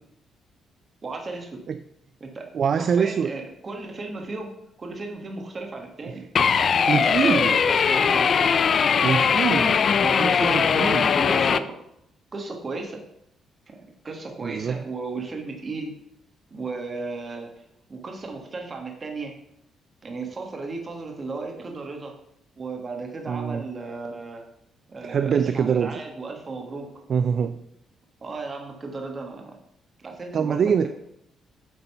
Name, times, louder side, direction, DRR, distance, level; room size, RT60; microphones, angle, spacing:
voice 1, 1.0-1.6 2.2-2.5 2.8-4.5 4.8-8.5 10.0-10.8 11.1-11.8 12.3-13.0 13.7-13.8 14.0-16.0 16.5-17.6 17.9-19.3 20.0-22.1 22.6-24.4 24.9-27.1 28.2-29.5 30.0-30.9, right 3 dB, 30° right, 3 dB, 1.6 m, -35 dB
voice 2, 2.5-3.3 6.9-7.5 9.0-9.8 10.2-11.1 14.4-14.8 23.3-23.6 25.0-25.9 27.1-27.6 30.3-30.9, right 7 dB, 50° right, 11 dB, 0.3 m, -24 dB
sound 1, 6.4-11.6, left 6 dB, 45° left, 0.3 m, -20 dB
7.9 x 4.0 x 5.5 m, 0.78 s
cardioid pair, 115°, 0 cm